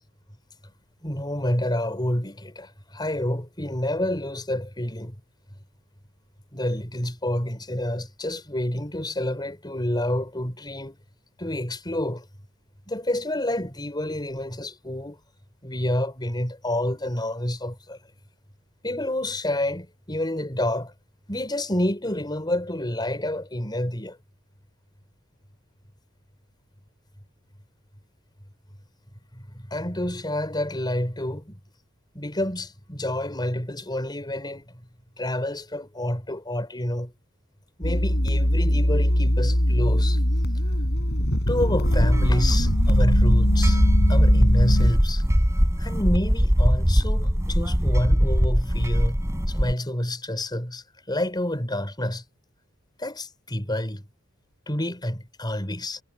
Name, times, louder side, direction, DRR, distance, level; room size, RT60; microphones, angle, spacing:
voice 1, 1.0-5.2 6.5-11.0 11.4-12.3 12.9-15.2 15.6-18.0 18.8-20.9 21.3-24.2 29.3-31.5 32.1-34.8 35.2-37.1 37.8-40.2 41.5-43.8 44.1-45.2 45.8-52.2 53.0-54.0 54.7-56.0, left 1 dB, 20° left, 5.6 m, -28 dB
sound 1, 37.8-44.9, equal, 55° left, 5.5 m, -21 dB
sound 2, 41.8-49.7, equal, 15° right, 4.4 m, -21 dB
head